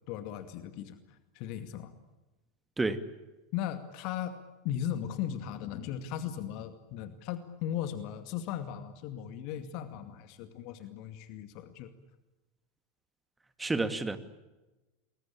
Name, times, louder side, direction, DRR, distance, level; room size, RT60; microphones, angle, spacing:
voice 1, 0.1-1.9 3.5-4.4 4.6-11.9, left 10 dB, 50° left, 2.3 m, -37 dB
voice 2, 13.6-14.2, right 3 dB, 10° right, 2.5 m, -29 dB
29.0 x 22.0 x 8.8 m
figure-of-eight pair, 85°, 0 cm